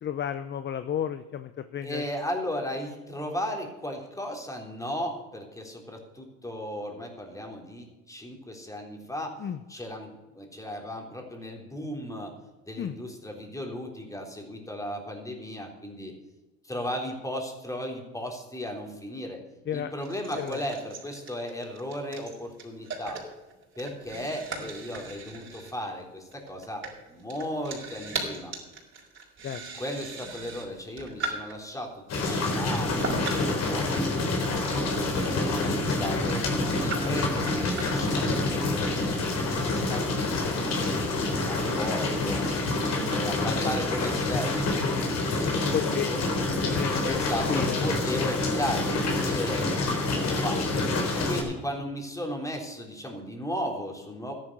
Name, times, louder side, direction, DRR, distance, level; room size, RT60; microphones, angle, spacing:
voice 1, 0.0-2.0 9.4-9.6 12.8-13.0 19.7-19.9 20.3-20.6 29.4-29.6 45.7-46.1 46.6-47.2 47.5-47.8 51.1-51.3, left 9 dB, 35° left, 11 dB, 0.7 m, -32 dB
voice 2, 1.8-9.4 9.7-12.3 12.6-16.1 16.6-19.4 19.7-23.2 23.8-28.5 29.7-33.2 33.5-36.5 36.7-40.2 40.5-41.1 41.5-45.5 45.8-46.2 47.0-50.6 51.0-54.3, equal, 10° left, 2 dB, 3.7 m, -36 dB
sound 1, 20.0-31.7 32.2-39.3, right 3 dB, 40° right, 5.2 m, -39 dB
sound 2, 32.1-51.4, left 2 dB, 55° left, 3.8 m, -27 dB
13.0 x 11.0 x 6.1 m, 1.1 s
supercardioid pair, 85°, 31 cm